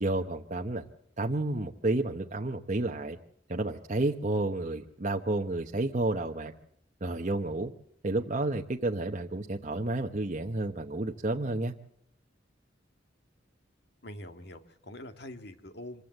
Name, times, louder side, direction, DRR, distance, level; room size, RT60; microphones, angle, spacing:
voice 1, 0.0-0.8 1.2-3.2 3.5-6.5 7.0-7.7 8.0-11.7, right 2 dB, 40° right, 3 dB, 1.0 m, -31 dB
voice 2, 14.0-16.0, left 1 dB, 60° left, 8 dB, 2.0 m, -44 dB
25.0 x 15.5 x 7.8 m, 0.69 s
head